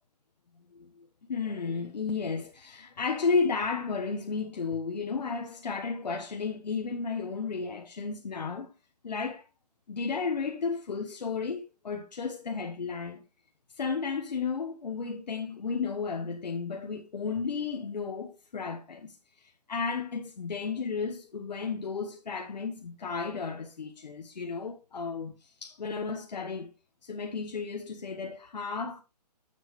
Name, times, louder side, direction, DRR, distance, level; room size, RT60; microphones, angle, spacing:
voice 1, 1.3-8.7 9.0-9.4 9.9-13.2 13.7-26.7 27.0-29.0, left 5 dB, 85° left, 1.3 m, -33 dB
9.8 x 7.4 x 3.1 m
hypercardioid pair, 155°, 21 cm